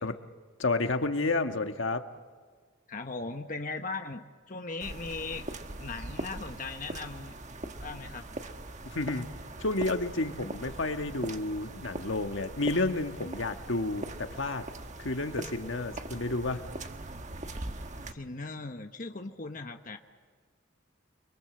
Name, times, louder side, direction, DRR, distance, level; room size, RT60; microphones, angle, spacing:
voice 1, 0.6-2.1 8.9-9.3 9.6-14.6 15.0-16.6, left 2 dB, 70° left, 7 dB, 1.5 m, -30 dB
voice 2, 2.9-5.4 5.8-7.3 7.8-8.2 17.9-20.0, left 3 dB, 40° left, 5 dB, 1.2 m, -38 dB
sound 1, 4.8-18.1, right 2 dB, 35° right, 1.3 m, -41 dB
29.5 x 23.5 x 7.9 m, 1.5 s
head